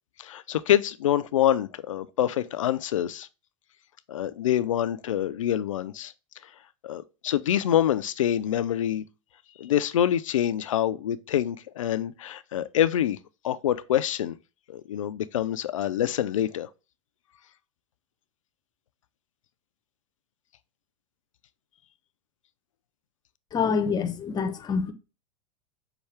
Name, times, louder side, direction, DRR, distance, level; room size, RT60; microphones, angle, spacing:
voice 1, 0.2-3.3 4.1-6.1 6.8-9.0 9.6-13.2 13.4-14.4 14.7-16.7, left 11 dB, 90° left, 0.4 m, -26 dB
voice 2, 23.5-24.9, left 5 dB, 25° left, 0.6 m, -26 dB
5.6 x 2.3 x 3.3 m
hypercardioid pair, 105°, 16 cm